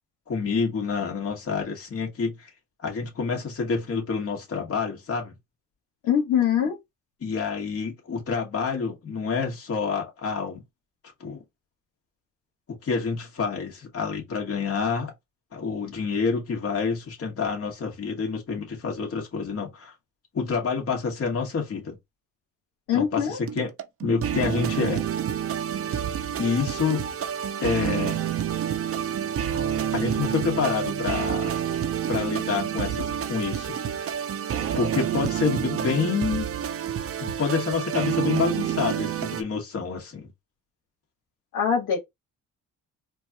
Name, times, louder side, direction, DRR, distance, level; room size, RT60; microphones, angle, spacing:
voice 1, 0.3-2.5 2.8-5.3 7.2-10.6 11.2-11.4 12.7-15.1 15.5-19.9 20.3-22.0 22.9-23.7 24.0-25.0 25.9-26.0 26.4-27.1 27.6-28.2 29.9-31.5 32.1-34.1 34.8-36.5 37.2-40.3, left 5 dB, 50° left, 2.0 m, -28 dB
voice 2, 6.0-6.8 22.9-23.4 41.5-42.0, left 8 dB, 85° left, 1.4 m, -23 dB
sound 1, 23.5-39.4, right 9 dB, 50° right, 0.6 m, -28 dB
4.4 x 2.5 x 2.9 m
cardioid pair, 90°, 30 cm